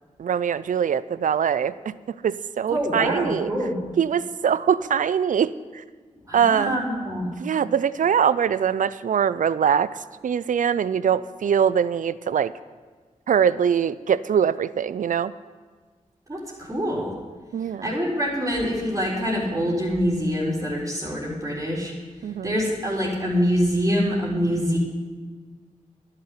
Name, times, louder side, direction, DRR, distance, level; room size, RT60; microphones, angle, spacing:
voice 1, 0.2-3.5 4.0-5.8 6.3-6.8 7.4-9.9 10.2-12.5 13.3-15.3 17.5-17.9 22.2-22.5, right 8 dB, 70° right, 17 dB, 0.4 m, -23 dB
voice 2, 2.7-3.8 6.3-7.3 16.3-17.1 17.8-21.9 22.4-24.8, equal, 25° right, -7 dB, 3.9 m, -25 dB
11.5 x 6.7 x 9.5 m, 1.5 s
cardioid pair, 45°, 14 cm